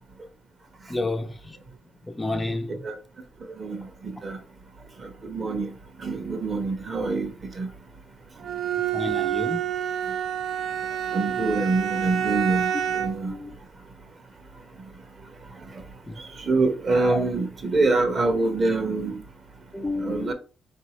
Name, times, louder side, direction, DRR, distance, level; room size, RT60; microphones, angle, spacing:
voice 1, 0.9-1.6 2.1-2.9 8.9-9.6 13.2-13.6 16.1-16.2 16.9-17.2 19.7-20.3, left 2 dB, 15° left, 0.4 m, -30 dB
voice 2, 5.3-5.7 6.0-7.3 7.6-7.7 11.1-13.3 16.5-19.2 20.0-20.3, right 3 dB, 40° right, 0.9 m, -25 dB
Bowed string instrument, 8.4-13.3, right 10 dB, 65° right, 0.4 m, -28 dB
4.1 x 2.6 x 3.0 m
cardioid pair, 90°, 0 cm